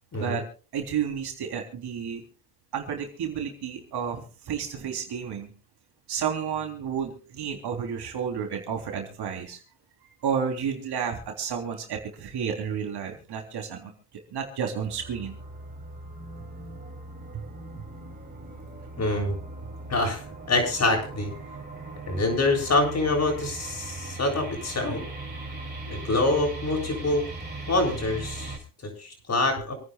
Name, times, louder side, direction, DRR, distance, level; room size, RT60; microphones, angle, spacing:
voice 1, 0.1-0.4 0.7-2.2 2.7-5.5 6.1-9.6 10.2-13.9 14.3-15.4 17.3-17.4 21.4-21.6, right 7 dB, 55° right, 3 dB, 3.6 m, -31 dB
sound 1, 14.8-28.6, right 2 dB, 20° right, 6.3 m, -39 dB
voice 2, 19.0-19.3 19.9-20.2 20.5-21.3 22.1-25.0 25.9-27.2 27.7-28.6 28.8-29.7, left 2 dB, 35° left, 3 dB, 7.7 m, -25 dB
28.0 x 9.8 x 2.4 m, 0.38 s
supercardioid pair, 75°, 47 cm